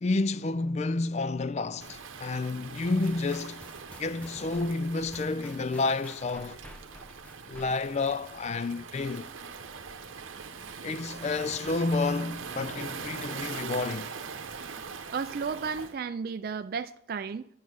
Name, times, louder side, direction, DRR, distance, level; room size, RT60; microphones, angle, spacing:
voice 1, 0.0-3.7 4.0-6.6 7.5-9.3 10.8-14.1, left 3 dB, 35° left, 0.3 m, -30 dB
Waves surf, 1.8-16.0, right 5 dB, 75° right, 0.9 m, -42 dB
sound 1, 3.0-8.1, equal, 5° left, 0.8 m, -51 dB
voice 2, 15.1-17.5, right 5 dB, 45° right, 0.3 m, -33 dB
10.0 x 7.2 x 6.3 m
head